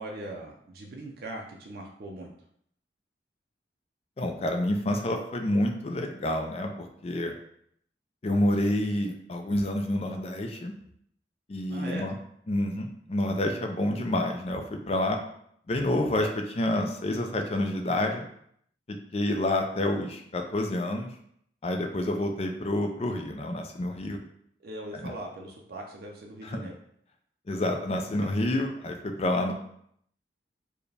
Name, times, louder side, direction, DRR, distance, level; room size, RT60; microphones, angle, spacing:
voice 1, 0.0-2.3 11.7-12.1 24.6-26.7 27.6-27.7, right 2 dB, 60° right, 0 dB, 0.4 m, -40 dB
voice 2, 4.2-7.3 8.2-10.7 11.5-12.2 12.5-15.2 15.7-18.2 18.9-21.1 21.6-24.2 24.9-25.1 26.4-26.7 27.5-29.5, left 1 dB, 35° left, 4 dB, 0.4 m, -28 dB
4.6 x 2.2 x 3.3 m, 0.70 s
head